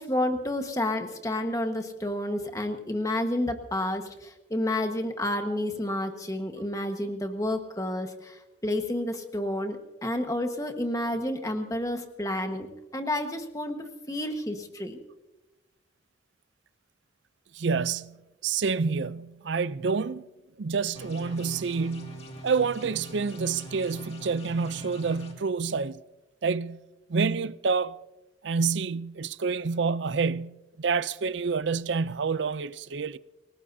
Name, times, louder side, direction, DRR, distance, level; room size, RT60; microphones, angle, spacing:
voice 1, 0.0-15.0, left 1 dB, 20° left, 1.4 m, -30 dB
voice 2, 17.5-20.3 20.6-26.0 26.4-26.8 27.1-28.0 28.4-33.2, right 5 dB, 75° right, 0.5 m, -28 dB
sound 1, 20.9-25.3, equal, 35° left, 2.3 m, -43 dB
28.0 x 18.5 x 2.7 m
head